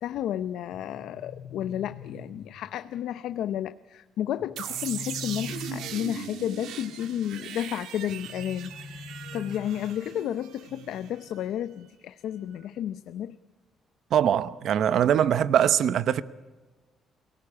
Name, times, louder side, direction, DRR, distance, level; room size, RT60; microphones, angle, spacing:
voice 1, 0.0-13.4, left 10 dB, 70° left, 0.7 m, -32 dB
sound 1, 0.7-2.7 4.4-6.4 8.1-10.1, left 5 dB, 25° left, 1.8 m, -43 dB
sound 2, 4.6-11.3, right 9 dB, 75° right, 1.8 m, -39 dB
voice 2, 14.1-16.2, right 9 dB, 55° right, 0.9 m, -22 dB
23.5 x 18.0 x 8.6 m
cardioid pair, 170°, 0 cm